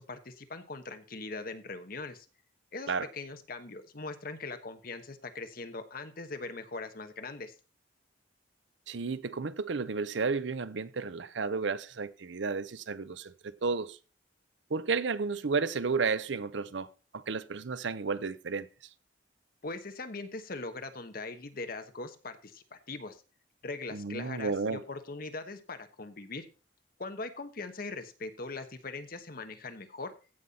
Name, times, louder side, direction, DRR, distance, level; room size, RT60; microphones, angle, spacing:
voice 1, 0.0-2.3 2.7-7.5 19.6-23.2 23.6-26.5 27.0-30.1, left 3 dB, 50° left, 1.2 m, -41 dB
voice 2, 8.9-14.0 14.7-16.9 17.1-18.7 23.9-24.8, right 4 dB, 70° right, 0.6 m, -32 dB
15.5 x 5.6 x 4.2 m
head